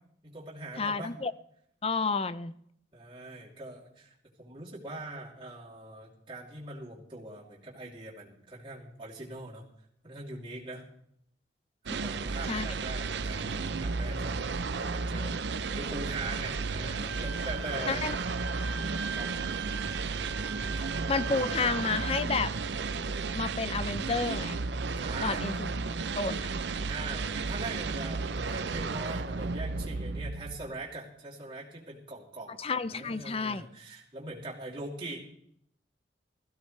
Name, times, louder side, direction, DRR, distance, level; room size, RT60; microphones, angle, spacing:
voice 1, 0.2-1.1 2.9-9.7 10.0-10.9 11.9-18.1 19.1-19.3 20.7-20.9 25.0-25.5 26.1-26.2 26.9-32.6 32.9-35.3, right 2 dB, 25° right, -5 dB, 3.1 m, -42 dB
voice 2, 0.8-1.3 1.8-2.5 12.5-12.7 17.9-18.2 21.1-22.5 23.3-24.6 25.2-25.7 26.2-26.5 32.6-33.7, left 4 dB, 30° left, 15 dB, 0.5 m, -30 dB
sound 1, 11.9-30.9, right 4 dB, 70° right, 0.6 m, -33 dB
Bowed string instrument, 17.1-22.2, right 7 dB, 90° right, 1.1 m, -40 dB
17.0 x 15.0 x 3.3 m, 0.70 s
head